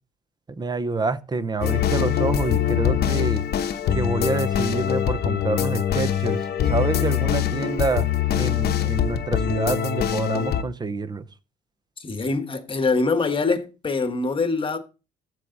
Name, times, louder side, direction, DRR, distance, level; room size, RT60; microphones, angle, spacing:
voice 1, 0.5-3.4 3.9-11.3, right 3 dB, 20° right, 0.7 m, -27 dB
sound 1, 1.6-10.6, left 10 dB, 55° left, 0.9 m, -23 dB
voice 2, 12.0-14.8, left 3 dB, 25° left, 1.3 m, -24 dB
14.5 x 4.8 x 3.9 m
cardioid pair, 110°, 19 cm